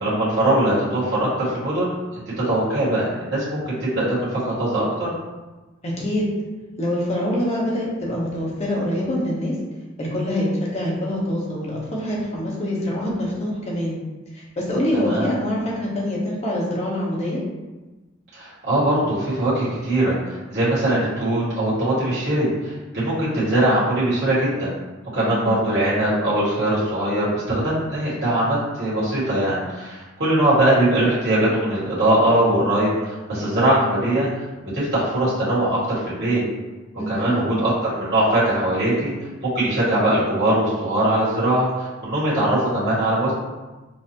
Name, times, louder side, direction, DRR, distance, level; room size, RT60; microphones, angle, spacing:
voice 1, 0.0-1.9 2.5-5.1 14.9-15.3 18.3-24.7 25.1-34.3 34.7-36.4 37.1-39.1 39.4-43.3, right 1 dB, 60° right, -10 dB, 1.4 m, -21 dB
voice 2, 5.8-6.3 6.8-9.5 10.0-14.0 14.3-17.4 25.1-25.5 37.0-37.5, left 1 dB, 35° left, -5 dB, 1.0 m, -25 dB
5.4 x 2.1 x 2.9 m, 1.2 s
head